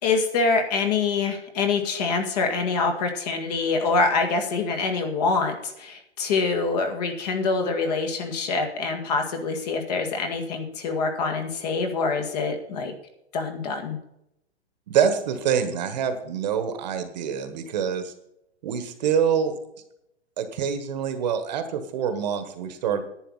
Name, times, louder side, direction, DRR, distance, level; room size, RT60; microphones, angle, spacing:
voice 1, 0.0-12.9 13.3-14.0, left 4 dB, 35° left, 5 dB, 1.9 m, -25 dB
voice 2, 14.9-18.1 18.6-19.6 20.4-23.0, right 7 dB, 40° right, 8 dB, 1.4 m, -25 dB
11.0 x 9.1 x 5.6 m, 0.79 s
hypercardioid pair, 160°, 34 cm